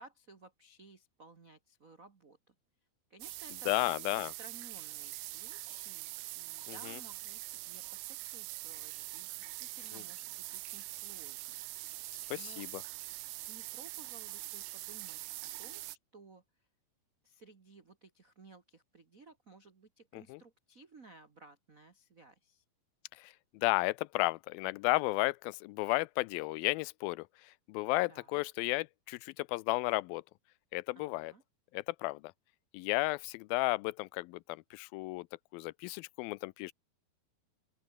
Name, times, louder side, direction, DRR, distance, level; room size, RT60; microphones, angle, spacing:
voice 1, 0.0-2.5 3.1-11.6 11.9-12.6 13.5-16.4 17.2-22.6 28.1-28.4 30.9-31.4, right 3 dB, 50° right, 0.9 m, -57 dB
sound 1, 3.2-16.0, right 19 dB, 80° right, 1.9 m, -44 dB
voice 2, 3.7-4.3 6.7-7.0 9.9-10.0 12.3-12.8 20.1-20.4 23.2-30.2 30.7-31.3 31.7-32.2 32.7-35.3 35.5-36.7, left 22 dB, 80° left, 2.3 m, -33 dB
open air
omnidirectional pair, 4.3 m